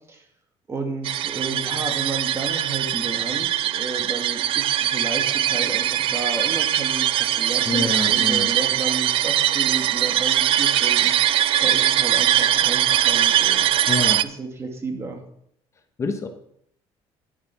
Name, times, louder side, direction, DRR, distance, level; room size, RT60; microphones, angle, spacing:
voice 1, 0.7-11.1 11.6-13.7 14.2-15.2, right 3 dB, 25° right, 3 dB, 2.1 m, -32 dB
sound 1, 1.0-14.2, right 12 dB, 55° right, 0.5 m, -21 dB
voice 2, 7.6-8.5 13.9-14.2 16.0-16.3, left 3 dB, 25° left, 6 dB, 1.0 m, -26 dB
10.5 x 7.4 x 5.9 m, 0.71 s
cardioid pair, 145°, 11 cm